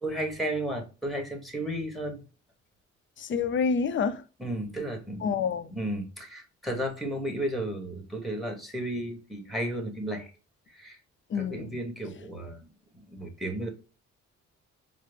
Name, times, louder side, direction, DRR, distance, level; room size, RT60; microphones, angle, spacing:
voice 1, 0.0-2.2 4.4-10.3 10.7-11.0 11.3-12.7 12.9-13.7, right 1 dB, ahead, 1.1 m, -33 dB
voice 2, 3.2-4.2 5.2-5.7 11.3-11.8, left 5 dB, 40° left, 0.5 m, -28 dB
4.8 x 2.0 x 3.3 m
cardioid pair, 90°, 30 cm